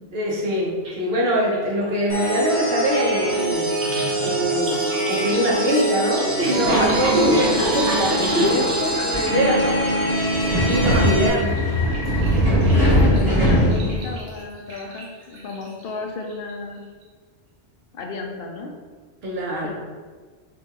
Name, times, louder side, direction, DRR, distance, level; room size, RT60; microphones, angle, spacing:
voice 1, 0.1-3.7 4.2-4.8 5.1-8.5 8.9-9.8 10.5-11.5 19.2-19.7, equal, 60° right, -3 dB, 1.1 m, -23 dB
sound 1, 0.8-1.0 1.2-15.9 16.3-16.8 17.0-17.1, right 1 dB, 80° right, 1.4 m, -36 dB
sound 2, 2.1-11.3, right 1 dB, 15° right, 0.8 m, -24 dB
Subway metro underground, 6.6-14.1, equal, 35° right, 1.6 m, -21 dB
voice 2, 8.4-9.5 12.7-16.8 17.9-18.7 19.6-19.7, left 3 dB, 60° left, 2 dB, 0.7 m, -31 dB
5.9 x 2.3 x 2.9 m, 1.5 s
omnidirectional pair, 1.2 m